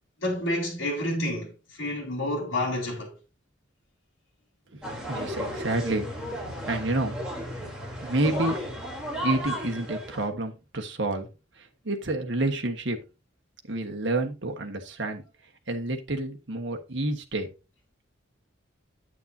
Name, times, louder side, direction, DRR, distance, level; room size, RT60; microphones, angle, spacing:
voice 1, 0.2-1.5 1.8-3.1, left 1 dB, 70° left, 3.7 m, -29 dB
sound 1, 4.8-10.3, equal, 5° right, 3.3 m, -34 dB
voice 2, 5.0-6.1 6.7-7.2 8.0-8.7 8.9-11.3 11.8-13.0 13.7-15.2 15.7-17.5, right 2 dB, 60° right, 1.5 m, -29 dB
9.3 x 8.6 x 2.8 m
head